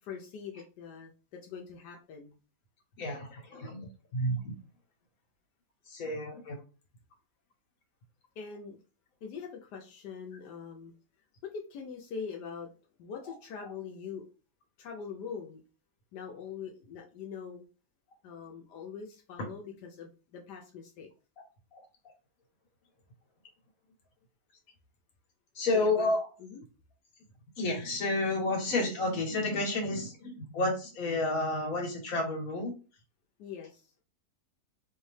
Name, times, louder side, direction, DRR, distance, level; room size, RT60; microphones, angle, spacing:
voice 1, 0.0-2.4 8.4-8.8 9.2-10.9 11.4-12.7 13.0-14.3 14.8-15.6 16.1-17.6 18.2-21.1 25.7-26.1 26.4-26.6 33.4-33.9, left 6 dB, 85° left, 1 dB, 1.3 m, -43 dB
voice 2, 3.0-4.5 5.9-6.6 13.3-13.4 21.4-21.5 21.7-21.8 25.5-26.3 27.6-32.7, left 2 dB, 60° left, 1 dB, 1.6 m, -31 dB
4.4 x 2.7 x 3.2 m, 0.34 s
omnidirectional pair, 1.7 m